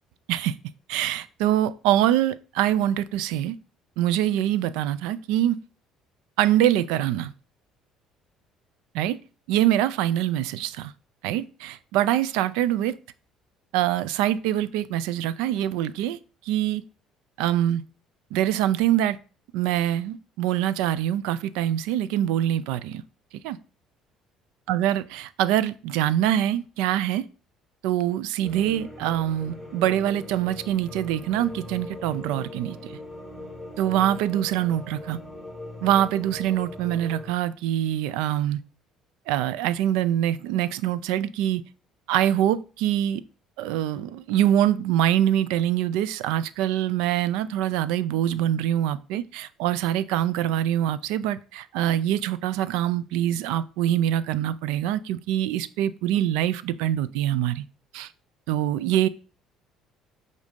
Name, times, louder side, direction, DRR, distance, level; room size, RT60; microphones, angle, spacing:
voice 1, 0.9-3.6 4.0-5.6 6.4-7.3 8.9-9.2 9.5-10.9 11.2-13.0 13.7-16.2 16.5-16.8 17.4-17.8 18.3-19.2 19.5-23.0 23.4-23.6 24.7-27.2 27.8-32.8 33.8-35.2 35.8-38.6 39.3-41.6 42.1-43.2 43.6-57.6 57.9-58.1 58.5-59.1, right 12 dB, 90° right, 0.4 m, -24 dB
sound 1, 28.4-37.3, left 1 dB, ahead, 2.5 m, -40 dB
8.1 x 2.7 x 5.1 m
cardioid pair, 110°, 0 cm